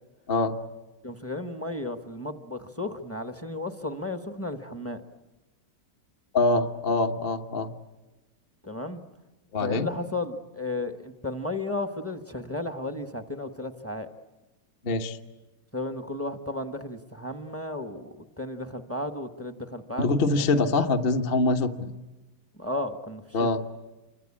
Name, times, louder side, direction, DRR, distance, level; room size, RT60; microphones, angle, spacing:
voice 1, 1.0-5.0 8.6-9.0 9.6-14.1 15.7-20.1 20.4-20.5 22.6-23.2, left 2 dB, 10° left, 7 dB, 0.8 m, -34 dB
voice 2, 6.3-7.7 9.5-9.9 14.8-15.2 20.0-21.9 23.3-23.6, left 3 dB, 35° left, 5 dB, 1.0 m, -24 dB
28.5 x 24.5 x 8.6 m, 1.1 s
omnidirectional pair, 2.3 m